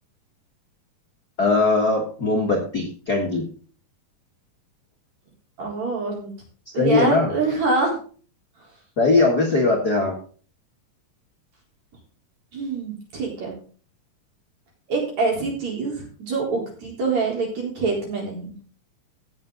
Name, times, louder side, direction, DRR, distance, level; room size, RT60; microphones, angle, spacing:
voice 1, 1.4-3.4 6.8-7.3 9.0-10.1, left 3 dB, 35° left, -1 dB, 1.7 m, -20 dB
voice 2, 5.6-6.3 6.7-8.0 12.5-13.6 14.9-18.5, right 3 dB, 55° right, -1 dB, 5.2 m, -25 dB
16.5 x 7.1 x 3.9 m, 0.41 s
omnidirectional pair, 3.9 m